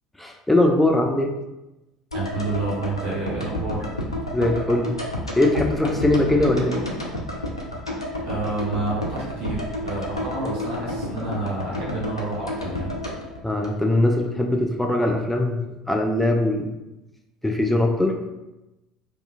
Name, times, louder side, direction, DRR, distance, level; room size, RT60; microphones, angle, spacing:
voice 1, 0.2-1.3 4.3-5.0 5.4-6.8 13.4-15.6 15.9-16.7 17.4-18.2, left 1 dB, 5° left, 2 dB, 0.3 m, -21 dB
sound 1, 2.1-14.3 14.6-14.7, left 1 dB, 85° left, 0.3 m, -31 dB
voice 2, 2.1-3.9 8.2-12.9, right 2 dB, 55° right, -6 dB, 1.1 m, -29 dB
2.7 x 2.3 x 2.5 m, 0.99 s
figure-of-eight pair, 65°, 3 cm